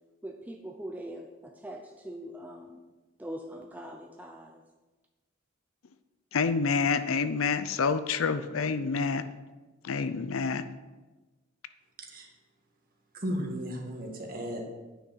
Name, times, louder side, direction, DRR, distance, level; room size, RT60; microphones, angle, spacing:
voice 1, 0.2-2.8 3.2-4.6, right 1 dB, 10° right, 2 dB, 0.5 m, -42 dB
voice 2, 6.3-9.2 9.8-10.6, left 5 dB, 80° left, 12 dB, 0.6 m, -28 dB
voice 3, 13.1-14.6, equal, 45° right, 1 dB, 1.8 m, -34 dB
9.6 x 6.1 x 5.7 m, 1.2 s
head